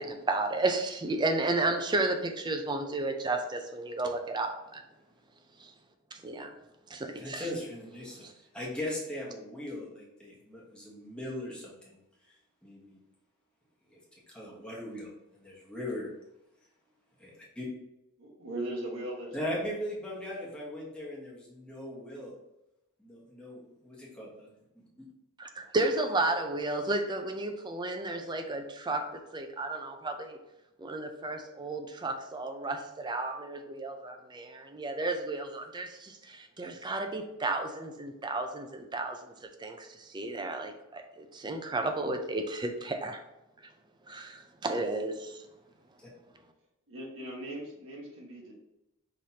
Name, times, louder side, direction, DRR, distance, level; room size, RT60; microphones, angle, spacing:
voice 1, 0.0-4.8 5.6-5.7 6.1-6.5 6.9-7.5 8.2-8.3 25.4-30.4 30.8-39.3 39.6-43.2 44.1-45.4, right 2 dB, 20° right, 5 dB, 0.5 m, -33 dB
voice 2, 7.2-8.3 8.5-12.0 12.6-13.0 13.9-14.0 14.3-16.1 17.2-17.7 19.3-22.3 23.0-25.0 46.0-46.1, left 1 dB, 5° left, -5 dB, 1.2 m, -39 dB
voice 3, 18.2-19.7 46.9-48.5, right 1 dB, 70° right, -2 dB, 1.4 m, -39 dB
5.8 x 3.2 x 2.8 m, 0.89 s
head